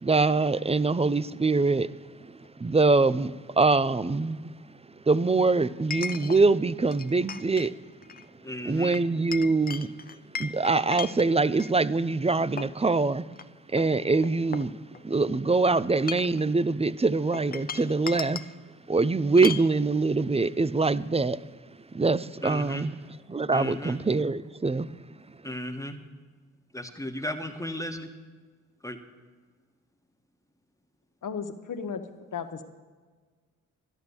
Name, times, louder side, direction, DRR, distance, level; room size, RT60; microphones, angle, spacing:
voice 1, 0.0-1.9 2.6-4.5 5.1-7.7 8.7-9.9 10.4-13.2 13.7-14.7 15.0-18.4 18.9-21.4 21.9-22.9 23.3-24.9, right 3 dB, 15° right, 0.5 m, -24 dB
Chink clink, 2.4-2.5 5.9-6.4 6.9-7.7 8.0-8.3 8.9-11.7 12.3-12.8 13.3-13.4 13.8-15.2 15.9-16.4 17.3-18.5 19.4-19.7, left 5 dB, 25° left, 0.6 m, -37 dB
voice 2, 8.4-9.0 22.4-22.9 23.5-24.0 25.4-26.0 26.7-28.1 28.8-29.0, left 1 dB, 10° left, 1.4 m, -35 dB
voice 3, 31.2-32.0 32.3-32.6, left 6 dB, 50° left, 1.2 m, -34 dB
11.5 x 11.0 x 7.1 m
supercardioid pair, 55°, 38 cm